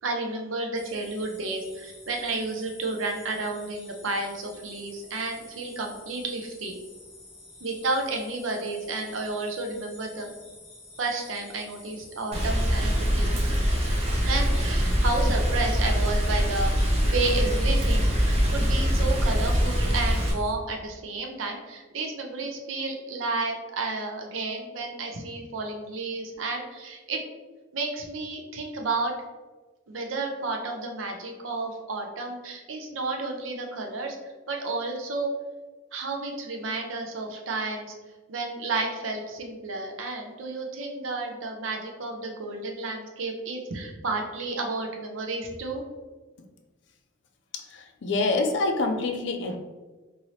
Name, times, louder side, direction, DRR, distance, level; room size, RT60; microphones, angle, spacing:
voice 1, 0.0-6.7 7.6-10.3 11.0-13.4 14.2-27.2 27.7-29.1 29.9-34.2 34.5-35.3 35.9-37.9 38.3-45.8, right 3 dB, 90° right, 2 dB, 0.6 m, -31 dB
sound 1, 0.7-20.5, left 2 dB, 35° left, 1.2 m, -49 dB
Rain, 12.3-20.3, equal, 30° right, 0.6 m, -23 dB
voice 2, 47.5-49.6, left 3 dB, 65° left, 4 dB, 0.4 m, -26 dB
2.7 x 2.7 x 3.1 m, 1.2 s
head